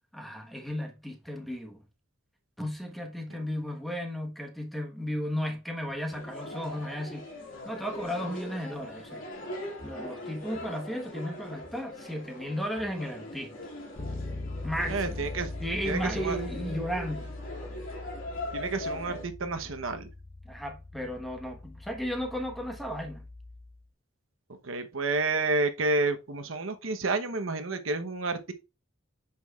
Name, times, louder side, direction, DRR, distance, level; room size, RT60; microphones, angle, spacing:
voice 1, 0.1-1.8 2.6-7.3 7.6-9.2 9.8-13.5 14.6-15.3 15.6-17.3 20.4-23.2, equal, ahead, 1.2 m, -34 dB
sound 1, 6.1-19.2, left 1 dB, 80° left, 2.4 m, -41 dB
Bass guitar, 14.0-23.8, left 2 dB, 45° left, 1.2 m, -41 dB
voice 2, 14.9-15.5 15.8-16.4 18.5-20.1 24.6-28.5, right 3 dB, 85° right, 1.0 m, -30 dB
8.4 x 6.1 x 2.4 m
head